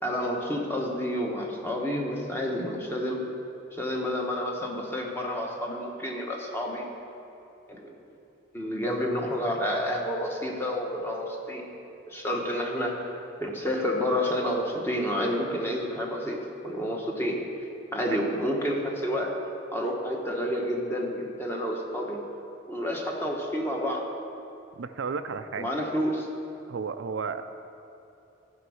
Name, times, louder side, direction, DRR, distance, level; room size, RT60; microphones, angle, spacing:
voice 1, 0.0-3.2 3.7-6.9 7.7-7.9 8.5-11.7 12.1-13.1 13.4-17.4 17.9-19.4 19.7-22.2 22.7-24.0 25.6-26.3, equal, 10° left, -1 dB, 1.2 m, -29 dB
voice 2, 18.1-18.4 24.7-25.7 26.7-27.4, right 5 dB, 90° right, 9 dB, 0.5 m, -33 dB
14.0 x 5.3 x 6.3 m, 2.8 s
head